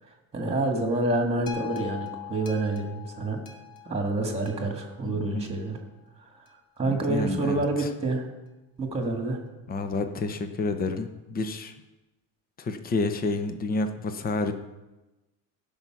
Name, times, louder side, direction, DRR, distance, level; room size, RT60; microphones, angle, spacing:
voice 1, 0.3-3.4 3.8-5.8 6.8-8.3 8.8-9.4, right 2 dB, 15° right, 3 dB, 2.2 m, -27 dB
sound 1, 1.5-5.8 6.5-6.6, left 11 dB, 50° left, 1.7 m, -42 dB
voice 2, 5.0-5.5 6.8-7.9 9.7-11.7 12.6-14.5, left 3 dB, 20° left, 8 dB, 0.8 m, -29 dB
16.5 x 5.6 x 6.2 m, 1.0 s
cardioid pair, 140°, 43 cm